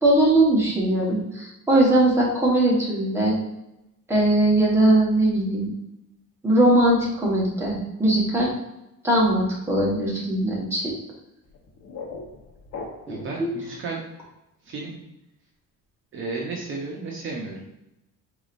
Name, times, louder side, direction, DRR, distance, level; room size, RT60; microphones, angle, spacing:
voice 1, 0.0-3.3 4.1-5.7 6.4-8.5 9.0-10.9 13.1-13.5, right 1 dB, 10° right, -5 dB, 1.2 m, -20 dB
sound 1, 11.4-13.4, left 3 dB, 55° left, 1.0 m, -39 dB
voice 2, 13.1-14.0 14.6-14.9 16.1-17.6, right 3 dB, 40° right, -2 dB, 0.8 m, -33 dB
4.9 x 4.0 x 2.5 m, 0.91 s
cardioid pair, 165°, 31 cm